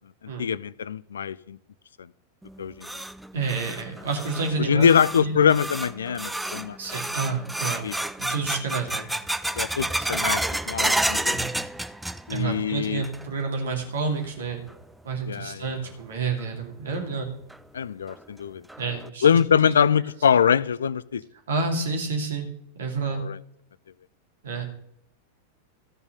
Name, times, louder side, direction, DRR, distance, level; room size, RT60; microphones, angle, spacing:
voice 1, 0.4-1.6 2.6-2.9 4.6-6.8 7.8-7.9 9.6-11.3 12.3-13.0 15.3-15.7 17.7-18.6 19.2-21.2 23.1-23.4, left 7 dB, 70° left, 19 dB, 0.4 m, -23 dB
sound 1, 2.4-12.6 12.8-13.5 13.8-13.9 14.7-14.8 16.4-16.5 16.9-17.0 17.5-17.6 18.1-18.2 18.7-19.1, right 1 dB, 5° right, 0.4 m, -30 dB
voice 2, 3.3-4.9 5.2-5.4 6.8-7.9 8.2-9.1 10.0-10.2 11.3-11.5 12.3-14.6 15.0-17.3 18.8-19.3 19.6-19.7 21.5-22.5 22.7-23.2 24.4-24.6, right 4 dB, 65° right, 3 dB, 2.7 m, -29 dB
13.5 x 5.5 x 6.7 m, 0.73 s
figure-of-eight pair, 90°, 0 cm